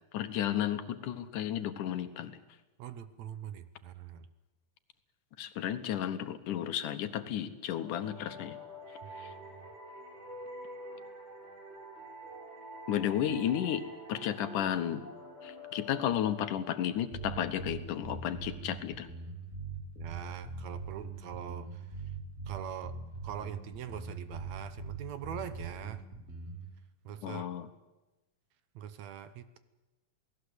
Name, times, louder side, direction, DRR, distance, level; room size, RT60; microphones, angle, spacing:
voice 1, 0.1-2.4 5.4-8.6 9.2-9.3 12.9-13.8 14.1-15.1 15.4-19.1 27.2-27.7, left 10 dB, 80° left, 10 dB, 2.8 m, -33 dB
voice 2, 2.8-4.3 9.0-9.7 20.0-22.0 22.5-23.0 23.2-26.0 27.0-27.5 28.8-29.6, right 9 dB, 70° right, 12 dB, 2.1 m, -43 dB
sound 1, 7.8-17.2, left 1 dB, 35° right, 4.5 m, -47 dB
sound 2, 17.1-26.7, right 4 dB, 20° right, 4.6 m, -42 dB
28.0 x 18.5 x 8.0 m, 1.1 s
omnidirectional pair, 3.6 m